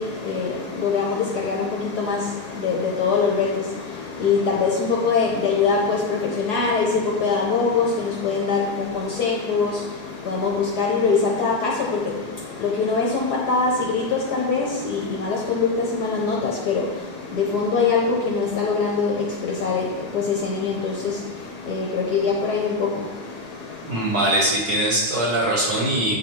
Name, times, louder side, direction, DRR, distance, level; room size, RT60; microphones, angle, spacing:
voice 1, 0.0-24.4, left 4 dB, 60° left, 1.2 m, -23 dB
voice 2, 23.8-26.2, right 1 dB, 50° right, 1.9 m, -21 dB
9.0 x 4.3 x 3.6 m
omnidirectional pair, 2.3 m